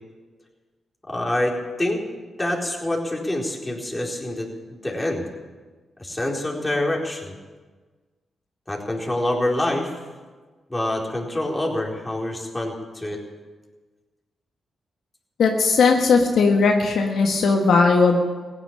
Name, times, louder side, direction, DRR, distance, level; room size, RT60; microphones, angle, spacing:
voice 1, 1.1-2.0 2.4-5.2 6.0-7.4 8.7-9.9 10.7-13.2, left 1 dB, 15° left, -1 dB, 4.3 m, -26 dB
voice 2, 15.4-18.2, left 4 dB, 75° left, 2 dB, 1.5 m, -18 dB
16.5 x 10.0 x 8.7 m, 1.4 s
supercardioid pair, 50°, 0 cm